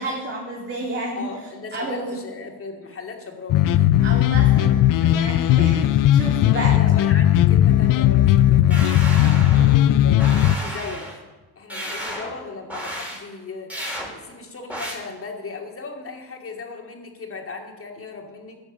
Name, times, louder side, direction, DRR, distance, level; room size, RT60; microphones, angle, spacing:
voice 1, 0.0-1.3 1.7-2.2 4.0-6.8 9.5-9.9, right 2 dB, 30° right, -4 dB, 3.1 m, -31 dB
voice 2, 1.2-3.9 4.2-4.3 6.5-8.9 10.0-11.1 11.6-18.6, left 4 dB, 35° left, 2 dB, 2.5 m, -37 dB
sound 1, 3.5-10.5, left 12 dB, 60° left, 0.5 m, -17 dB
sound 2, 8.7-9.8 10.2-11.2 11.7-12.4 12.7-13.2 13.7-14.1 14.7-15.0, equal, 5° right, 3.7 m, -32 dB
13.5 x 7.0 x 7.4 m, 1.2 s
cardioid pair, 100°, 36 cm